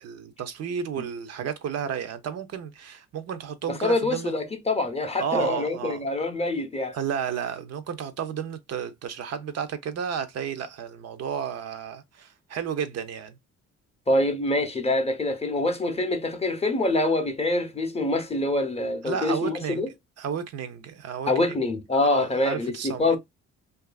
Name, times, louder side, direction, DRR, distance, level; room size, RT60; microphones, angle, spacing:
voice 1, 0.0-4.3 5.2-6.1 6.9-13.3 19.1-19.8 20.2-21.3 22.0-23.2, right 7 dB, 55° right, 0.5 m, -32 dB
voice 2, 3.7-7.0 14.1-19.9 21.3-23.2, left 2 dB, 20° left, 0.6 m, -25 dB
2.6 x 2.4 x 2.2 m
cardioid pair, 90°, 30 cm